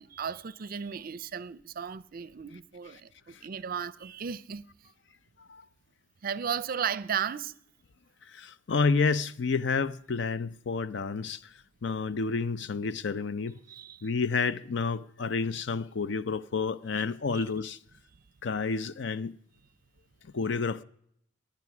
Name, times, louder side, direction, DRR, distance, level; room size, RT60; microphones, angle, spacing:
voice 1, 0.0-4.6 6.2-7.5 13.7-14.1 17.0-17.1 17.3-17.4, right 7 dB, 50° right, 0.5 m, -35 dB
voice 2, 8.3-11.4 11.8-13.6 14.0-17.8 18.4-19.3 20.3-20.8, left 4 dB, 65° left, 0.6 m, -30 dB
20.5 x 9.9 x 6.0 m
head